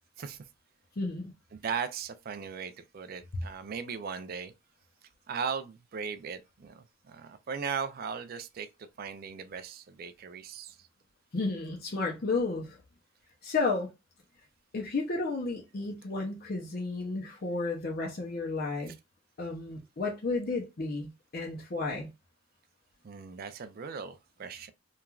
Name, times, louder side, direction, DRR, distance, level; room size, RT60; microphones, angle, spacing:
voice 1, 1.0-1.3 11.3-12.8 13.4-13.9 14.7-18.9 19.4-22.1, left 3 dB, 45° left, 0.5 m, -32 dB
voice 2, 1.5-4.5 5.3-10.9 18.9-19.0 23.0-24.7, right 6 dB, 45° right, 0.3 m, -38 dB
3.0 x 2.3 x 2.3 m
head